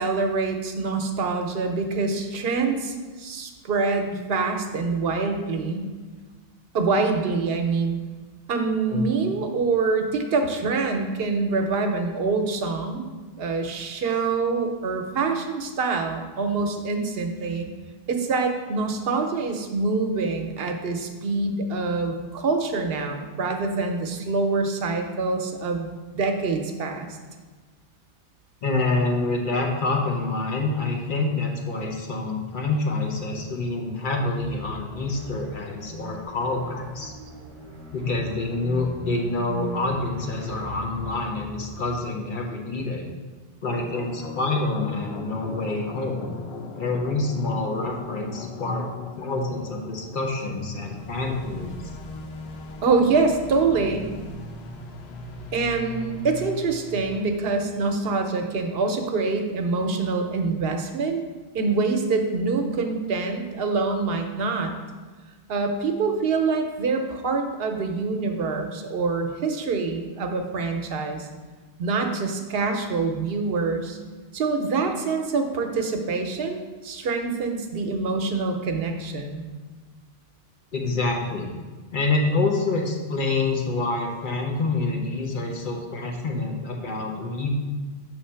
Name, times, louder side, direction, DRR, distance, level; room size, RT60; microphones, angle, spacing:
voice 1, 0.0-5.9 6.7-8.0 8.5-13.0 13.4-17.7 18.1-27.1 52.8-54.1 55.5-61.2 61.5-64.7 65.5-71.3 71.8-74.0 74.3-79.4, right 4 dB, 70° right, 5 dB, 0.9 m, -25 dB
voice 2, 28.6-37.1 37.9-43.1 43.6-46.3 46.7-48.9 49.2-51.8 80.7-81.5 81.9-87.5, left 3 dB, 55° left, 1 dB, 0.9 m, -27 dB
sound 1, 34.4-42.0, right 1 dB, 35° right, 1.0 m, -39 dB
sound 2, 43.6-57.4, left 2 dB, 80° left, 0.9 m, -38 dB
5.9 x 3.2 x 5.6 m, 1.3 s
omnidirectional pair, 1.0 m